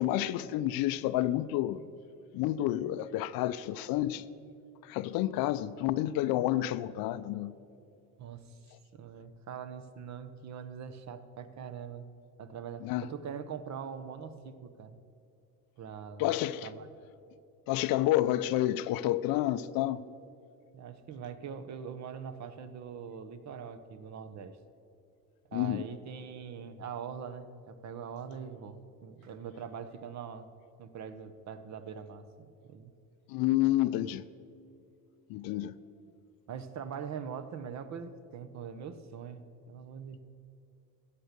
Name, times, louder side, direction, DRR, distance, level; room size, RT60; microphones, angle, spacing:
voice 1, 0.0-1.8 2.3-4.2 4.9-7.5 12.8-13.1 16.2-16.7 17.7-20.0 25.5-25.8 33.3-34.2 35.3-35.7, left 14 dB, 65° left, 0.6 m, -29 dB
voice 2, 8.2-8.6 8.9-12.1 12.4-15.0 15.8-16.3 16.6-16.9 20.7-24.6 25.5-30.5 30.8-32.9 36.5-40.2, right 7 dB, 45° right, 0.9 m, -42 dB
14.0 x 8.4 x 6.7 m
cardioid pair, 115°, 39 cm